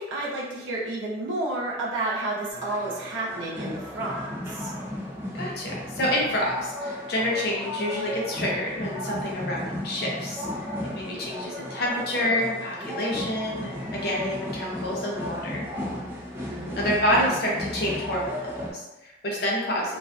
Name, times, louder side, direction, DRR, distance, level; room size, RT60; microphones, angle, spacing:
voice 1, 0.0-4.7 16.5-16.8, right 2 dB, 90° right, -6 dB, 0.6 m, -31 dB
sound 1, 2.5-18.7, left 1 dB, 10° right, 0.4 m, -34 dB
voice 2, 5.3-15.6 16.8-20.0, left 1 dB, 55° left, -3 dB, 0.6 m, -28 dB
2.4 x 2.2 x 2.4 m, 0.98 s
head